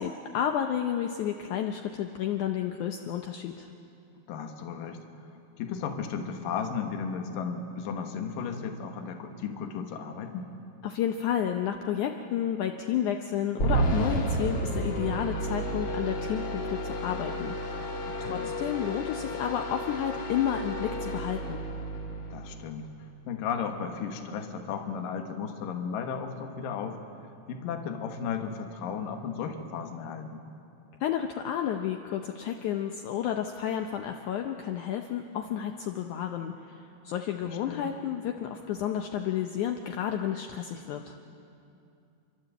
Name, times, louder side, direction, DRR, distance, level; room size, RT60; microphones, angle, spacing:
voice 1, 0.0-3.7 10.8-17.8 18.2-21.6 31.0-41.1, left 9 dB, 85° left, 4 dB, 1.7 m, -31 dB
voice 2, 4.3-5.0 5.6-10.5 18.0-18.5 22.3-22.9 23.3-27.0 27.5-30.4 37.4-37.9, left 6 dB, 65° left, 5 dB, 2.8 m, -35 dB
sound 1, 13.6-23.0, right 1 dB, 40° left, 2.0 m, -32 dB
29.0 x 12.5 x 7.8 m, 2.7 s
omnidirectional pair, 4.5 m